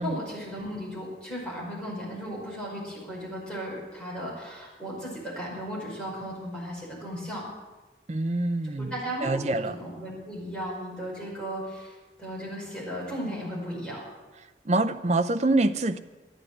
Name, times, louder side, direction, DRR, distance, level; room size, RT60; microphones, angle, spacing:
voice 1, 0.0-7.4 8.6-14.0, equal, 5° left, -6 dB, 5.3 m, -36 dB
voice 2, 8.1-8.9 9.2-9.8 14.7-16.0, right 2 dB, 40° right, 8 dB, 0.6 m, -25 dB
13.0 x 10.0 x 8.0 m, 1.2 s
head